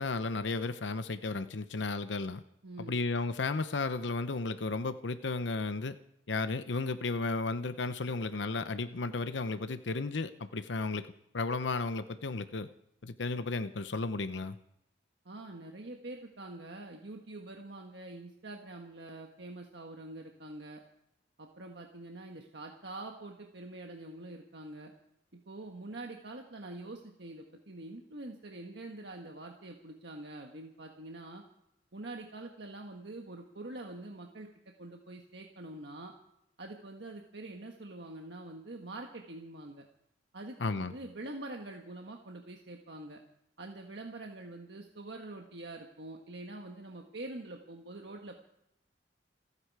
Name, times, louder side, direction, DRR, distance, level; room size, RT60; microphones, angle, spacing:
voice 1, 0.0-2.4 2.8-6.0 6.3-11.1 11.3-12.7 13.0-14.6 40.6-40.9, left 3 dB, 80° left, 11 dB, 0.8 m, -34 dB
voice 2, 2.6-3.0 15.2-20.8 21.4-24.9 25.5-31.4 31.9-34.5 34.8-36.1 36.6-39.9 40.3-43.2 43.6-48.3, right 2 dB, 70° right, 2 dB, 1.5 m, -45 dB
28.5 x 9.8 x 4.8 m, 0.80 s
head